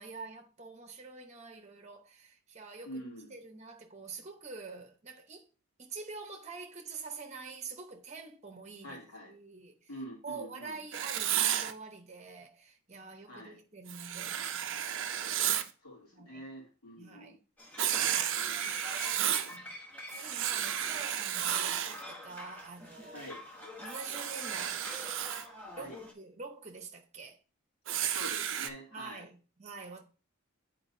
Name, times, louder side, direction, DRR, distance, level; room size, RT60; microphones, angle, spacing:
voice 1, 0.0-3.0 3.3-5.5 5.8-9.0 9.3-9.9 10.2-14.9 16.1-16.4 17.0-17.4 18.0-18.4 19.5-19.8 20.1-23.3 23.8-25.0 25.7-27.4 28.9-30.0, right 4 dB, 30° right, 0.9 m, -46 dB
voice 2, 2.8-3.4 8.8-9.3 9.9-10.8 13.3-13.6 15.8-17.4 18.4-19.0 23.1-23.4 25.7-26.0 28.1-29.3, equal, 85° left, 2.8 m, -46 dB
Writing, 10.9-11.7 13.9-15.7 17.8-19.5 20.1-22.0 23.9-25.4 27.9-28.7, right 10 dB, 55° right, 0.5 m, -32 dB
sound 1, 17.6-26.1, left 1 dB, 10° left, 1.1 m, -46 dB
9.5 x 4.4 x 2.7 m
head